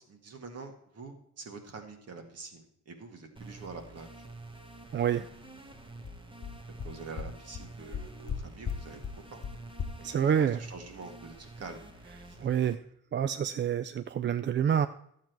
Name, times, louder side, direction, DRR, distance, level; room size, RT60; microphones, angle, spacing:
voice 1, 0.0-4.2 6.8-9.0 9.3-9.4 10.3-11.9 12.2-12.4, right 4 dB, 55° right, 5 dB, 1.9 m, -46 dB
sound 1, 3.4-12.8, right 2 dB, 15° right, 1.2 m, -49 dB
voice 2, 4.9-5.3 10.0-10.6 12.4-12.8 13.1-14.9, right 8 dB, 40° right, 11 dB, 0.4 m, -27 dB
sound 2, 5.7-5.8 6.0-6.1 6.4-6.5 6.8-6.9 7.2-7.3 7.5-7.6 7.9-8.4 8.6-8.8 9.0-9.1 9.4-9.5 9.8-9.9, left 7 dB, 35° left, 1.1 m, -34 dB
11.5 x 7.6 x 4.5 m, 0.72 s
cardioid pair, 90°, 30 cm